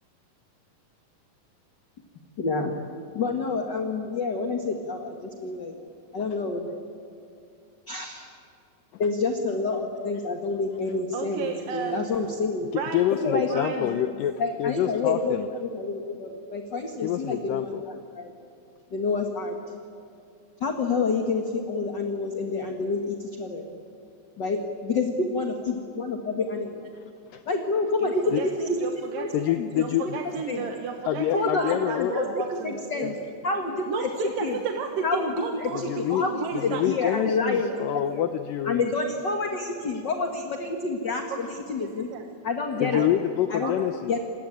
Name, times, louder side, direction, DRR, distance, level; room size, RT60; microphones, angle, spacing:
voice 1, 2.4-2.7 3.1-5.7 6.1-6.7 7.9-8.3 9.0-12.7 13.2-13.9 14.4-18.3 18.9-19.6 20.6-23.7 24.4-26.9 27.4-28.4 28.7-28.8 29.2-30.7 31.3-32.2 32.6-33.1 33.4-34.1 34.4-34.6 35.0-35.7 36.0-38.2 38.6-42.1 42.4-43.0 43.5-43.7 44.1-44.2, left 3 dB, 40° left, 3 dB, 1.7 m, -28 dB
voice 2, 11.1-12.1 12.7-13.0 13.5-13.8 28.0-33.1 33.9-37.3 37.7-37.8 41.3-42.2 42.9-43.1 43.6-43.7, right 6 dB, 70° right, 3 dB, 3.0 m, -34 dB
voice 3, 12.9-15.5 17.0-17.8 27.3-27.4 28.3-28.4 29.3-30.2 31.1-32.1 35.7-36.3 36.5-38.8 42.8-44.2, left 11 dB, 75° left, 8 dB, 2.3 m, -27 dB
28.0 x 21.0 x 9.0 m, 2.6 s
omnidirectional pair, 4.3 m